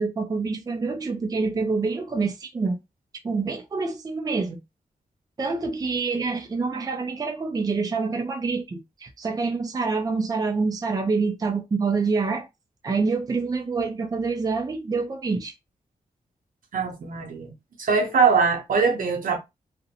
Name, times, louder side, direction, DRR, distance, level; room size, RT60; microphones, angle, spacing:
voice 1, 0.0-2.8 3.2-4.6 5.4-12.5 12.8-15.5, right 4 dB, 25° right, 0.4 m, -26 dB
voice 2, 16.7-17.5 17.8-19.4, right 5 dB, 75° right, 0.7 m, -22 dB
2.5 x 2.1 x 2.8 m
wide cardioid pair, 130°, 14 cm